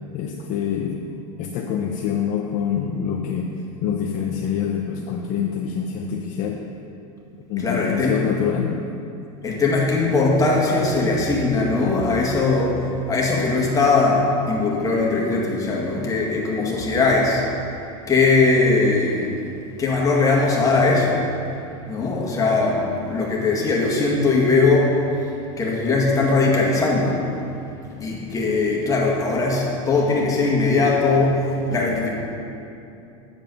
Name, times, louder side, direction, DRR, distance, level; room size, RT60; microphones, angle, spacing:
voice 1, 0.1-1.0 1.4-3.5 3.8-6.6 7.5-8.8, left 8 dB, 45° left, 1 dB, 0.7 m, -25 dB
voice 2, 7.6-8.2 9.4-12.8 13.1-17.4 18.1-19.3 19.8-21.2 21.9-24.9 25.6-27.2 28.0-32.1, left 3 dB, 20° left, -3 dB, 1.9 m, -20 dB
8.8 x 7.4 x 5.3 m, 2.7 s
supercardioid pair, 125°, 18 cm